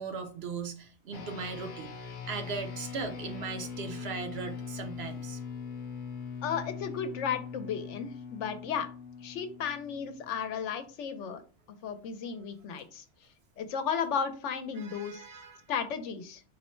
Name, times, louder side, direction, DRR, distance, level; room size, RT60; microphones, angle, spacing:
voice 1, 0.0-1.9 2.3-5.4 14.8-15.6, right 5 dB, 65° right, 6 dB, 0.8 m, -38 dB
sound 1, 1.1-10.8, left 6 dB, 50° left, 0.7 m, -42 dB
voice 2, 6.4-8.9 9.2-11.4 11.7-13.0 13.6-15.3 15.7-16.4, left 7 dB, 80° left, 9 dB, 0.9 m, -34 dB
4.2 x 2.1 x 4.3 m, 0.38 s
omnidirectional pair, 1.2 m